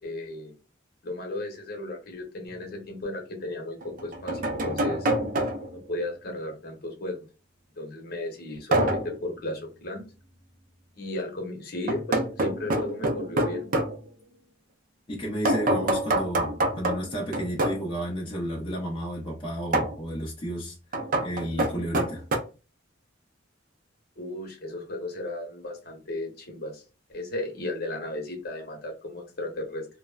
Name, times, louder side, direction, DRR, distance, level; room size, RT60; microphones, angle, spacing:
voice 1, 0.0-0.5 1.0-5.1 5.9-7.2 7.8-10.0 10.9-13.7 24.2-26.8 27.1-29.9, left 1 dB, 50° left, 0.9 m, -35 dB
sound 1, 2.5-2.6 3.8-5.8 8.7-9.2 11.9-14.0 15.4-17.9 19.7-20.0 20.9-22.4, right 1 dB, 45° right, 0.5 m, -26 dB
voice 2, 15.1-20.8 21.2-22.2, equal, 25° left, 0.5 m, -32 dB
3.2 x 2.1 x 2.3 m
head